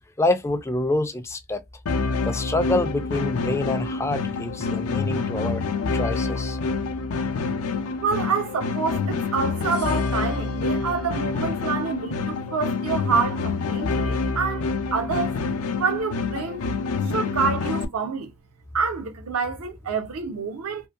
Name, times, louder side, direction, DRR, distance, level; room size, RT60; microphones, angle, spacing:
voice 1, 0.2-1.6 2.2-5.6 5.9-6.6, left 2 dB, 10° left, 0.3 m, -26 dB
sound 1, 1.9-17.9, left 4 dB, 80° left, 0.5 m, -27 dB
voice 2, 8.0-15.4 15.8-16.7 17.0-18.3 18.7-20.9, right 5 dB, 80° right, 0.6 m, -27 dB
2.7 x 2.5 x 2.4 m
head